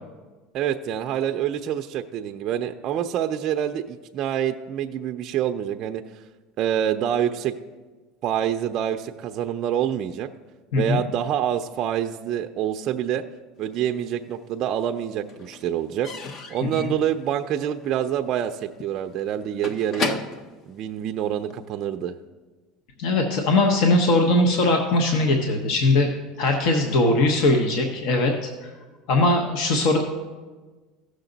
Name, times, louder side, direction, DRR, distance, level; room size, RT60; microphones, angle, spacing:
voice 1, 0.5-6.0 6.6-7.5 8.2-10.3 10.7-13.2 13.6-16.1 16.5-20.2 20.7-22.1, right 10 dB, 40° right, 5 dB, 0.4 m, -26 dB
Slam / Squeak / Wood, 13.8-14.6 14.9-21.7, left 4 dB, 35° left, 0.6 m, -35 dB
voice 2, 16.6-16.9 23.0-26.1 26.4-28.3 28.6-28.7 29.1-30.0, left 2 dB, 65° left, 3 dB, 1.0 m, -20 dB
15.0 x 6.5 x 3.9 m, 1.3 s
cardioid pair, 155°, 0 cm